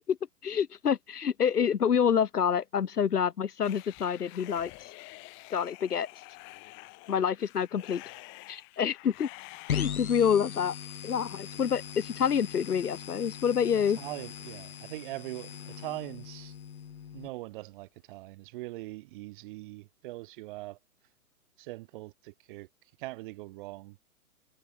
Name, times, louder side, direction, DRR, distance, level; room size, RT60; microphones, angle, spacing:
voice 1, 0.4-4.7 5.5-6.1 7.1-8.0 8.5-9.3 9.7-10.7 11.0-14.0, left 7 dB, 85° left, 0.8 m, -27 dB
sound 1, 3.6-9.8, left 28 dB, 25° left, 2.6 m, -48 dB
sound 2, 9.7-17.3, left 8 dB, 70° left, 1.2 m, -39 dB
voice 2, 14.0-16.5 17.1-20.8 21.6-22.7 23.0-24.0, right 19 dB, 35° right, 2.1 m, -41 dB
figure-of-eight pair, 125°, 45 cm